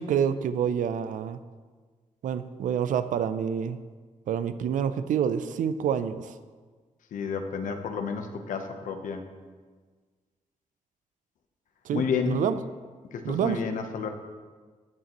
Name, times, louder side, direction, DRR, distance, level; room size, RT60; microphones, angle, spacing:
voice 1, 0.0-1.4 2.2-3.8 4.3-6.3 11.8-12.6 13.2-13.6, right 8 dB, 85° right, 13 dB, 0.4 m, -27 dB
voice 2, 7.1-9.3 11.9-12.4 13.1-14.1, left 6 dB, 85° left, 6 dB, 0.8 m, -31 dB
13.5 x 6.5 x 3.0 m, 1.5 s
cardioid pair, 100°, 13 cm